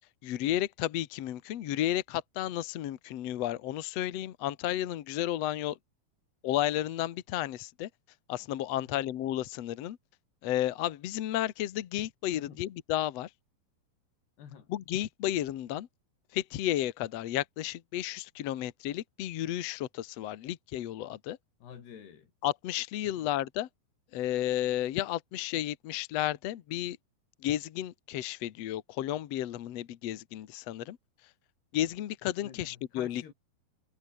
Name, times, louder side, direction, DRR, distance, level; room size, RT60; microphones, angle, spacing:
voice 1, 0.2-5.8 6.4-7.9 8.3-10.0 10.4-13.3 14.7-15.9 16.3-21.4 22.4-23.7 24.1-27.0 27.4-31.0 31.7-33.3, left 13 dB, 65° left, 1.7 m, -32 dB
voice 2, 12.3-12.6 14.4-14.7 21.6-22.3 23.0-23.3 32.4-33.3, left 8 dB, 85° left, 5.4 m, -49 dB
omnidirectional pair, 4.6 m